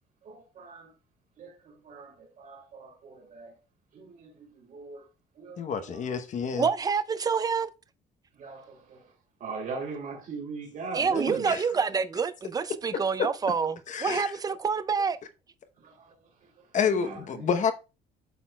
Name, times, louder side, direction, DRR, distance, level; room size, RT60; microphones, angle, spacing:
voice 1, 0.2-0.9 1.4-3.5 3.9-5.1 5.4-6.0 8.3-9.0 9.4-11.5 15.8-16.1 16.4-17.5, right 4 dB, 50° right, 3.0 m, -40 dB
voice 2, 5.6-6.7 11.5-11.6 13.9-14.3 16.7-17.7, left 6 dB, 45° left, 0.8 m, -28 dB
voice 3, 6.6-7.7 10.9-15.2, right 5 dB, 20° right, 0.4 m, -27 dB
11.5 x 4.2 x 2.2 m
cardioid pair, 110°, 17 cm